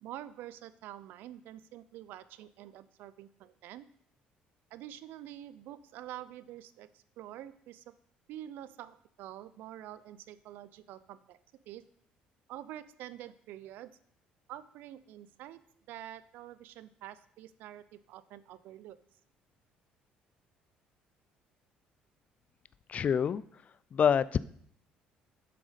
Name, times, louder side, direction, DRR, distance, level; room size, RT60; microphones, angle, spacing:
voice 1, 0.0-3.9 4.7-7.9 8.3-11.4 11.7-11.8 12.5-13.9 14.5-15.6 15.9-19.0, right 12 dB, 75° right, 16 dB, 0.5 m, -47 dB
voice 2, 22.9-23.4 23.9-24.4, left 7 dB, 45° left, 18 dB, 0.4 m, -26 dB
7.7 x 6.3 x 5.1 m, 0.65 s
supercardioid pair, 90°, 3 cm